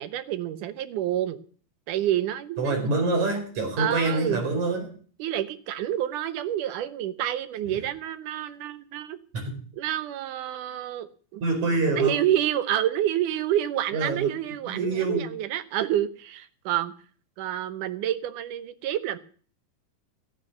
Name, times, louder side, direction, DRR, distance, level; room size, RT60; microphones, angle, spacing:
voice 1, 0.0-1.4 1.9-2.8 3.8-4.4 5.2-9.2 9.8-11.4 11.9-16.9 17.4-19.2, right 12 dB, 75° right, 12 dB, 2.3 m, -28 dB
voice 2, 2.6-4.8 7.7-7.8 9.4-9.6 11.4-12.1 13.9-14.3 14.7-15.3, right 2 dB, 55° right, 2 dB, 6.3 m, -26 dB
15.0 x 9.8 x 6.5 m, 0.43 s
omnidirectional pair, 4.0 m